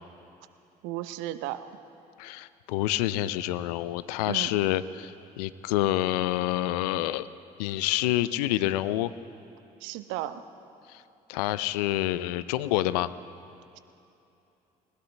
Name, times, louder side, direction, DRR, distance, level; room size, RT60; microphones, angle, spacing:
voice 1, 0.8-1.6 4.3-4.5 9.8-10.4, right 14 dB, 70° right, 12 dB, 0.8 m, -34 dB
voice 2, 2.2-7.3 7.6-9.1 10.9-11.0 11.3-13.1, left 15 dB, 75° left, 16 dB, 0.5 m, -27 dB
19.5 x 19.5 x 3.3 m, 2.8 s
hypercardioid pair, 50°, 20 cm